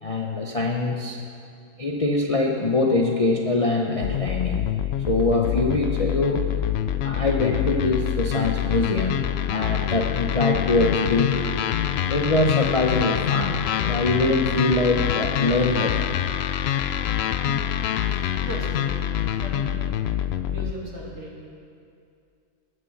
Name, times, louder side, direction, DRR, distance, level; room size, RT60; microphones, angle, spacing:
voice 1, 0.0-1.2 1.8-4.7 5.1-6.5 7.0-11.4 12.1-16.2 17.5-17.6, left 2 dB, 35° left, 0 dB, 0.6 m, -23 dB
sound 1, 4.0-20.7, left 10 dB, 70° left, 0.6 m, -25 dB
voice 2, 18.4-18.9 19.4-19.7 20.5-21.3, right 2 dB, 50° right, -4 dB, 2.7 m, -36 dB
18.0 x 6.4 x 7.1 m, 2.4 s
omnidirectional pair, 1.6 m